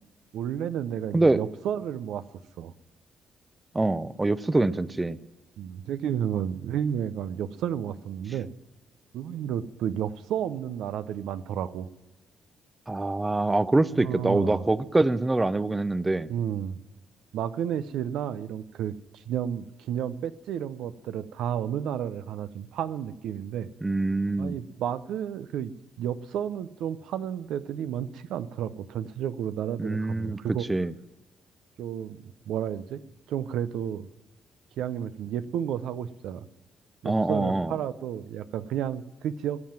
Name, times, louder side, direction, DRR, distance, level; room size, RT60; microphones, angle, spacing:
voice 1, 0.3-2.2 2.6-2.7 5.6-8.5 9.1-11.9 13.9-14.7 16.3-16.8 17.3-23.7 24.4-30.7 31.8-33.0 33.3-34.1 34.8-36.5 37.0-39.6, right 9 dB, 85° right, 13 dB, 0.6 m, -32 dB
voice 2, 3.7-5.2 12.9-16.3 23.8-24.6 29.8-30.4 30.7-30.9 37.0-37.7, right 2 dB, 15° right, 16 dB, 0.6 m, -24 dB
19.0 x 7.6 x 8.8 m, 1.0 s
cardioid pair, 90°, 0 cm